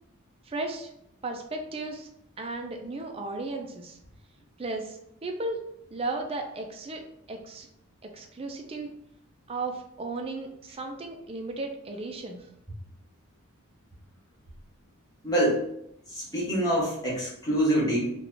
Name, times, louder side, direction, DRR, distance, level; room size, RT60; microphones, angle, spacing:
voice 1, 0.5-0.9 1.2-2.1 2.4-4.0 4.6-5.6 5.9-7.0 7.3-7.7 8.0-8.9 9.5-12.4, right 2 dB, 25° right, 3 dB, 0.4 m, -35 dB
voice 2, 15.2-15.6 16.1-18.1, right 1 dB, 15° left, -5 dB, 1.0 m, -25 dB
3.4 x 2.4 x 3.7 m, 0.76 s
head